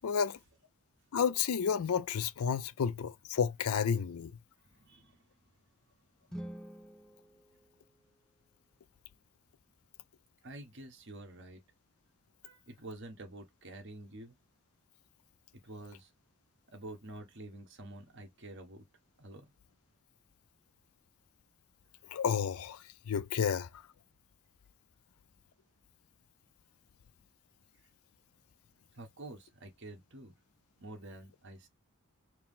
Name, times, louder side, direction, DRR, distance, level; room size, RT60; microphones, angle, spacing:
voice 1, 0.0-0.4 1.1-4.3 22.1-22.8 23.1-23.7, left 7 dB, 90° left, 0.4 m, -31 dB
voice 2, 4.6-5.2 10.4-11.6 12.4-14.3 15.5-16.1 16.7-18.9 19.2-19.4 28.9-30.3 30.8-31.7, right 2 dB, 55° right, 1.3 m, -48 dB
sound 1, 6.2-8.5, right 1 dB, 5° left, 0.4 m, -48 dB
4.6 x 2.0 x 3.7 m
head